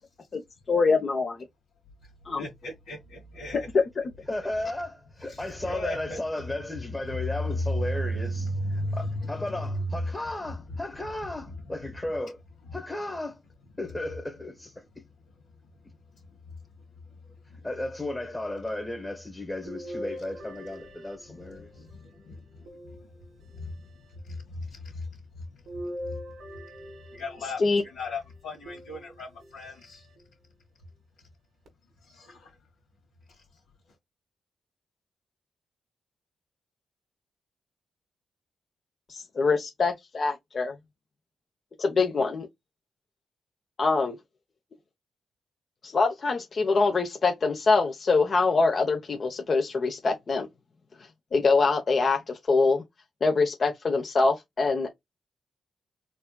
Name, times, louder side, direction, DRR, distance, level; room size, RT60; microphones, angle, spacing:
voice 1, 0.7-1.4 2.3-2.5 27.6-27.8 39.1-40.7 41.8-42.5 43.8-44.2 45.8-50.5 51.3-52.8 53.2-54.9, left 4 dB, 50° left, 1.0 m, -24 dB
voice 2, 2.4-3.7 5.3-6.2 6.4-6.6 7.0-10.2 10.7-10.8 11.5-11.6 16.3-16.4 16.8-16.9 17.1-17.6 21.2-23.1 23.4-25.2 25.5-26.3 27.1-30.1 31.2-31.3 32.0-32.6 33.3-33.6, left 1 dB, 85° left, 1.5 m, -35 dB
voice 3, 4.3-12.4 12.7-13.4 13.8-15.1 17.6-21.7, left 1 dB, 25° left, 1.3 m, -35 dB
sound 1, 19.7-21.9 22.7-23.7 25.7-27.7 28.7-29.5 30.2-30.3 31.7-31.8, equal, 75° right, 1.5 m, -41 dB
4.3 x 3.3 x 2.3 m
supercardioid pair, 50°, 0 cm